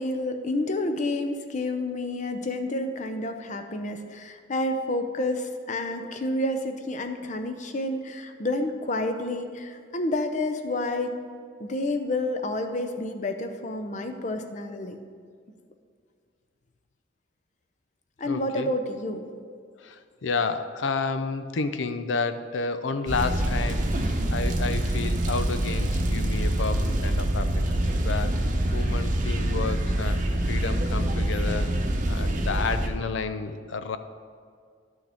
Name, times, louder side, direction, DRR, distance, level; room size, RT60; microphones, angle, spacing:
voice 1, 0.0-11.1 11.6-15.0 18.2-19.3, left 1 dB, 40° left, 6 dB, 0.6 m, -29 dB
voice 2, 18.2-18.7 19.8-31.7 32.1-34.0, left 4 dB, 85° left, 10 dB, 0.5 m, -31 dB
sound 1, 23.1-32.9, right 1 dB, 45° right, 0.8 m, -25 dB
11.5 x 6.2 x 3.5 m, 2.1 s
head